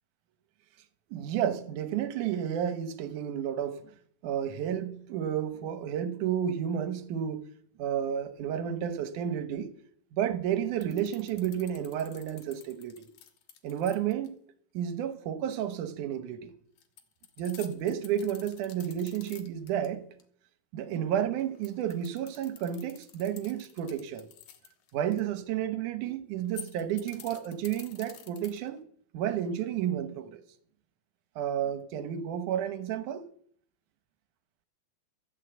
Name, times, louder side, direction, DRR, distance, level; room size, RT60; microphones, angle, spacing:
voice 1, 1.1-3.8 4.2-7.4 7.8-9.7 10.1-13.1 13.6-14.4 14.7-16.5 17.4-20.1 20.7-24.3 24.9-28.8 29.1-30.4 31.4-33.2, right 9 dB, 70° right, 2.2 m, -31 dB
sound 1, 10.8-14.3 16.8-19.9 20.2-20.3 21.4-25.2 26.4-28.8, left 10 dB, 70° left, 2.8 m, -50 dB
13.5 x 8.5 x 8.0 m
omnidirectional pair, 4.1 m